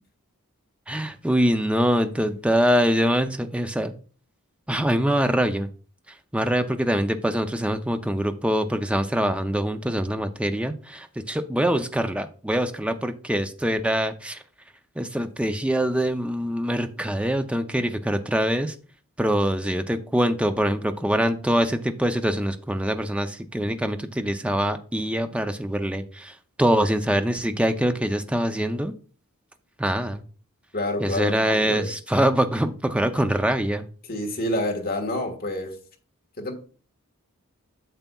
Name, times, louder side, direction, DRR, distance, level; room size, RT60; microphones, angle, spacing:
voice 1, 0.9-3.9 4.7-5.7 6.3-14.4 15.0-18.7 19.2-28.9 29.8-30.2 31.0-33.9, equal, 5° right, 0.4 m, -24 dB
voice 2, 30.7-31.9 34.1-35.8 36.4-36.6, left 1 dB, 45° left, 1.5 m, -28 dB
8.9 x 7.0 x 2.3 m
head